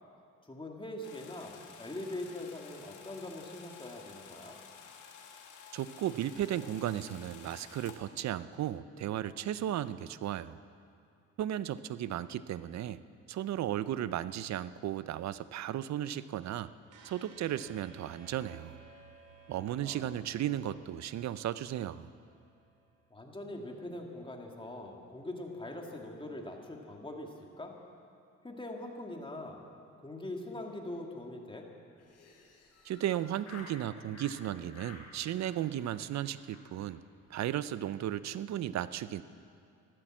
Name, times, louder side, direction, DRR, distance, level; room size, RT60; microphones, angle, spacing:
voice 1, 0.4-4.6 19.8-20.2 23.1-27.7 28.4-29.6 30.0-31.7, left 1 dB, 15° left, 1 dB, 2.2 m, -42 dB
sound 1, 1.0-8.0, left 7 dB, 85° left, 1.8 m, -52 dB
voice 2, 5.7-10.6 11.4-13.0 13.3-16.7 17.0-18.8 19.5-22.1 32.8-37.0 37.3-39.2, right 11 dB, 65° right, 15 dB, 0.6 m, -35 dB
sound 2, 16.9-23.0, right 5 dB, 85° right, 2.7 m, -57 dB
Laughter, 32.0-33.8 34.1-34.4 34.7-35.1 35.4-35.8 36.1-36.2 36.5-36.6 36.9-37.0 37.2-37.4 37.7-38.0, left 4 dB, 55° left, 4.4 m, -53 dB
15.0 x 13.0 x 7.4 m, 2.5 s
cardioid pair, 90°, 30 cm